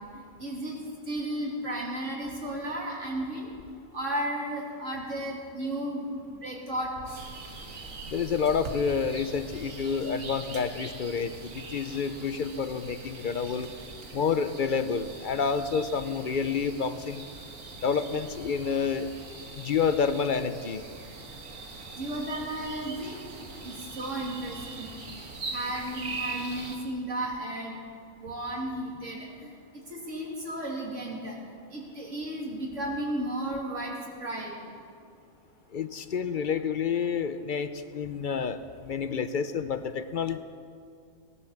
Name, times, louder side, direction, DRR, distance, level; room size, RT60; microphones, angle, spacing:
voice 1, 0.1-0.8 1.1-3.5 3.9-6.9 22.0-23.2 23.6-24.9 25.5-27.8 28.2-29.5 29.9-31.4 31.7-34.5, right 1 dB, 70° right, -2 dB, 3.2 m, -34 dB
sound 1, 7.0-26.8, right 3 dB, 90° right, 1.9 m, -42 dB
voice 2, 8.1-13.7 14.1-17.2 17.8-19.1 19.6-20.9 35.7-40.4, left 6 dB, 50° left, 11 dB, 0.7 m, -29 dB
18.0 x 11.0 x 7.3 m, 2.3 s
omnidirectional pair, 1.3 m